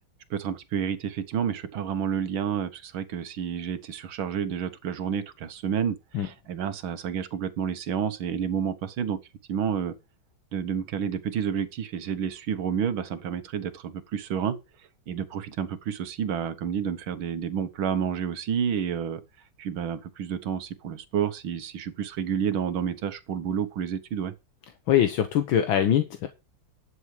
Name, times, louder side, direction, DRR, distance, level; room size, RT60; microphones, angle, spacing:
voice 1, 0.3-9.2 9.5-9.9 10.5-14.6 15.1-19.2 19.6-24.3, right 8 dB, 75° right, 2.0 m, -30 dB
voice 2, 24.9-26.3, left 10 dB, 70° left, 1.8 m, -22 dB
11.5 x 7.2 x 5.0 m
omnidirectional pair, 2.3 m